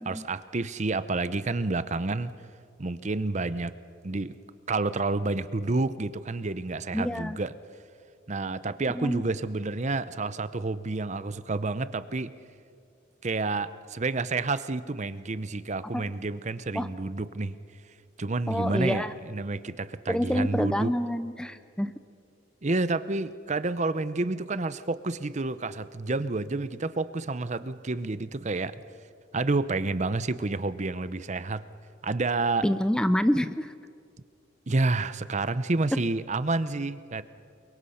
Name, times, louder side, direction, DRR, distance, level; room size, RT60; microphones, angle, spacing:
voice 1, 0.0-2.3 2.8-3.7 4.0-4.4 4.7-7.5 8.3-12.3 13.2-17.6 18.2-20.9 22.6-28.7 29.3-31.6 32.0-32.7 34.7-37.2, right 3 dB, 40° right, 14 dB, 0.7 m, -29 dB
voice 2, 6.9-7.4 8.9-9.2 15.9-16.1 16.7-16.9 18.5-19.1 20.1-21.9 32.6-33.7, equal, 5° left, 12 dB, 0.5 m, -27 dB
28.5 x 23.0 x 5.7 m, 2.5 s
head